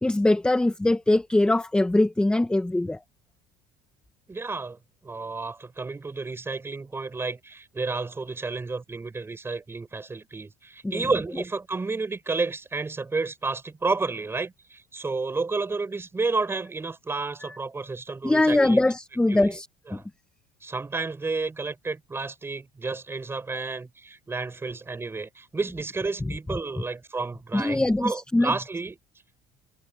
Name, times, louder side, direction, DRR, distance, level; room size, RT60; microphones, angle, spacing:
voice 1, 0.0-3.0 10.9-11.0 18.2-19.7 19.9-20.0 27.5-28.5, left 2 dB, 5° left, 1.1 m, -22 dB
voice 2, 4.3-18.8 19.3-19.6 19.9-20.0 20.6-29.0, right 3 dB, 15° right, 7.1 m, -31 dB
cardioid pair, 120°, 14 cm